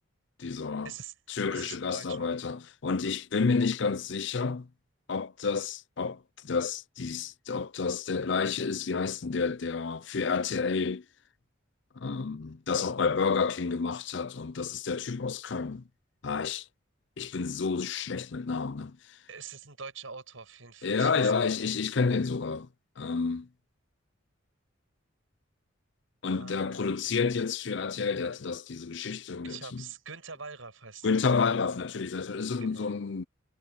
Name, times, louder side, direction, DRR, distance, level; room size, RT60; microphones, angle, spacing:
voice 1, 0.4-0.9 1.3-4.7 5.1-11.0 12.0-15.8 16.2-16.7 17.2-19.2 20.8-22.7 23.0-23.5 26.2-29.8 31.0-33.2, left 5 dB, 60° left, 0.6 m, -30 dB
voice 2, 1.5-2.3 19.3-21.7 26.2-27.0 29.4-31.1 32.6-32.9, right 6 dB, 80° right, 5.8 m, -44 dB
head